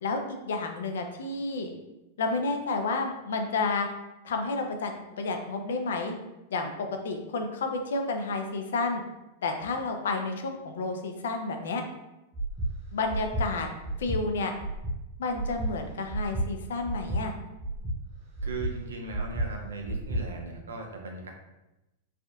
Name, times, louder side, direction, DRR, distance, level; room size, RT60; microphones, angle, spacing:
voice 1, 0.0-1.7 2.2-3.9 4.2-6.1 6.5-9.0 9.4-11.8 12.9-13.7 14.0-14.5 15.2-17.3, left 3 dB, 70° left, 5 dB, 0.4 m, -30 dB
Breathing, 12.3-12.7 13.1-13.4 13.8-14.2 14.6-15.0 15.3-15.7 16.1-16.5 16.8-17.2 17.6-18.0 18.4-18.7 19.1-19.5 19.9-20.2, right 1 dB, 55° right, 1.4 m, -31 dB
voice 2, 18.4-21.3, right 3 dB, 80° right, 2 dB, 0.5 m, -38 dB
3.4 x 2.5 x 2.3 m, 0.96 s
hypercardioid pair, 100°, 0 cm